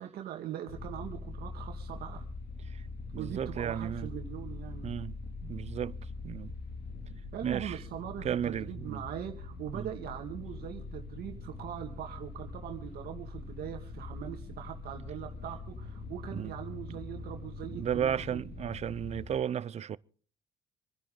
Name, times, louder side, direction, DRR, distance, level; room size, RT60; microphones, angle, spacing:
voice 1, 0.0-2.2 3.2-4.9 7.3-18.4, right 11 dB, 65° right, 2.0 m, -41 dB
sound 1, 0.7-19.4, left 3 dB, 70° left, 2.4 m, -43 dB
voice 2, 3.1-4.1 4.8-5.1 5.4-6.0 6.2-6.5 7.4-7.8 8.2-9.0 9.7-9.9 16.3-16.5 16.9-17.0 17.7-20.0, right 9 dB, 40° right, 0.6 m, -34 dB
27.0 x 10.5 x 3.8 m
cardioid pair, 110°, 17 cm